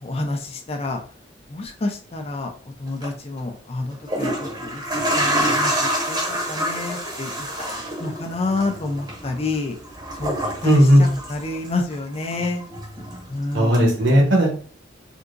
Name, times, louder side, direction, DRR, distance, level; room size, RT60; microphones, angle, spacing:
voice 1, 0.0-1.0 1.5-2.5 2.8-9.8 10.1-10.4 10.6-12.6 13.3-14.2, left 2 dB, 30° left, 4 dB, 0.5 m, -29 dB
sound 1, 2.9-3.1 3.9-11.9 12.2-13.3 13.7-13.8, equal, 20° right, 0.8 m, -27 dB
voice 2, 10.6-11.0 13.5-14.5, equal, 65° right, 0 dB, 1.0 m, -15 dB
3.6 x 2.7 x 2.5 m, 0.44 s
head